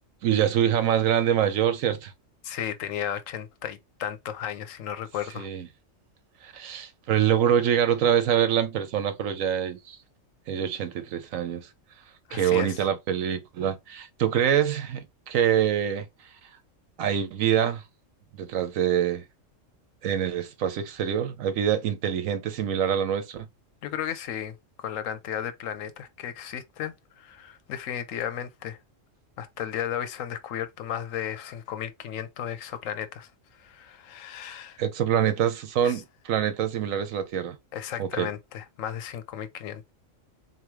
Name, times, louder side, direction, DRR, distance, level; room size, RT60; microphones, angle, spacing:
voice 1, 0.2-2.1 5.4-5.7 6.4-10.0 10.5-11.7 12.3-16.1 17.0-17.8 18.4-19.2 20.0-23.5 34.8-37.6 38.0-38.3, right 9 dB, 90° right, 1.2 m, -25 dB
voice 2, 2.4-5.5 12.3-12.8 23.8-28.8 29.4-33.3 33.6-34.8 35.8-36.0 37.7-39.9, left 9 dB, 85° left, 1.1 m, -34 dB
4.0 x 3.0 x 3.1 m
omnidirectional pair, 1.3 m